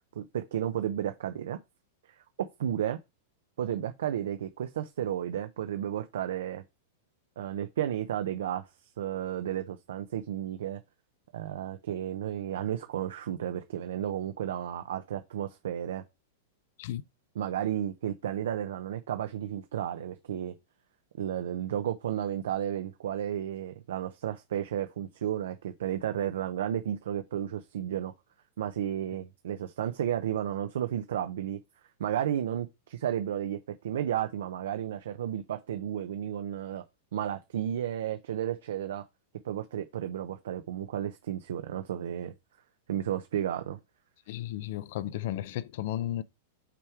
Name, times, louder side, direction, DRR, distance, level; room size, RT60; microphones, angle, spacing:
voice 1, 0.2-1.6 2.1-2.2 2.6-3.0 3.6-6.6 7.4-8.7 9.0-10.8 11.3-16.0 17.4-20.5 21.2-28.1 28.6-31.6 32.0-33.6 33.8-36.8 37.1-39.0 39.4-42.3 42.9-43.8, right 10 dB, 80° right, 0.6 m, -33 dB
voice 2, 44.3-46.2, left 13 dB, 60° left, 0.5 m, -34 dB
5.8 x 3.6 x 4.7 m
supercardioid pair, 145°, 0 cm